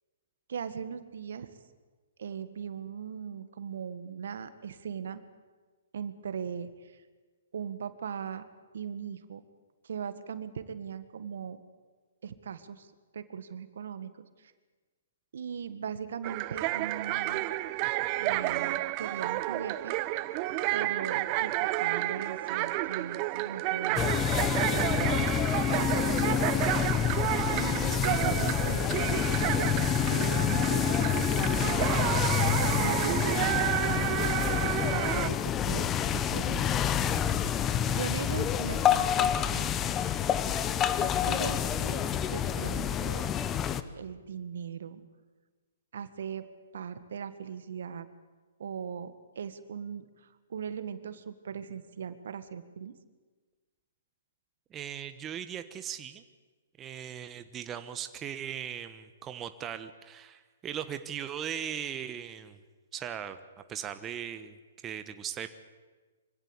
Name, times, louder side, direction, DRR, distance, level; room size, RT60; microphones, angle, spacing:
voice 1, 0.5-1.5 2.2-5.2 5.9-7.0 7.5-8.4 8.7-9.4 9.8-11.6 12.2-14.5 15.3-17.5 18.2-19.9 20.7-25.1 25.7-26.6 27.4-29.7 30.1-32.2 32.8-34.4 34.9-36.7 37.9-39.7 41.0-43.3 44.0-45.0 45.9-46.5 46.7-48.1 48.6-52.9, right 7 dB, 70° right, 12 dB, 1.7 m, -39 dB
sound 1, 16.2-35.3, right 17 dB, 35° right, 0.9 m, -31 dB
sound 2, 24.0-43.8, left 9 dB, 20° left, 1.0 m, -28 dB
voice 2, 54.7-56.2 56.8-62.6 62.9-63.4 63.7-64.6 64.8-65.5, right 9 dB, 20° right, 9 dB, 1.2 m, -38 dB
24.5 x 16.5 x 8.3 m, 1.3 s
hypercardioid pair, 130°, 0 cm